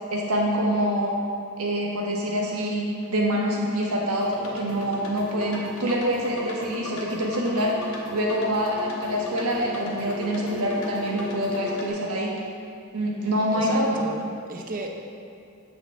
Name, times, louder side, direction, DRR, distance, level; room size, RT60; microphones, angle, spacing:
voice 1, 0.1-1.1 1.6-7.8 8.1-12.3 12.9-14.0, equal, 80° right, -2 dB, 1.2 m, -25 dB
sound 1, 4.2-11.9, left 2 dB, 70° left, 0.9 m, -37 dB
voice 2, 13.5-14.9, right 2 dB, 40° right, 2 dB, 0.6 m, -34 dB
7.5 x 5.9 x 3.3 m, 2.4 s
head